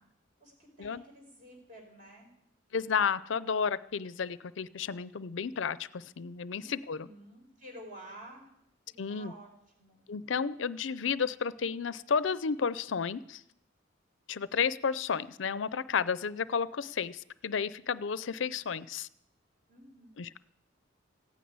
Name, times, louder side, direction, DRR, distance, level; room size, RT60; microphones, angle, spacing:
voice 1, 0.4-2.3 6.5-8.5 8.9-9.5 9.8-10.0 19.7-20.2, equal, 45° right, 1 dB, 4.8 m, -51 dB
voice 2, 2.7-7.1 9.0-9.3 10.1-13.4 14.3-19.1 20.2-20.3, left 6 dB, 75° left, 17 dB, 0.5 m, -32 dB
15.5 x 9.4 x 9.5 m, 0.78 s
head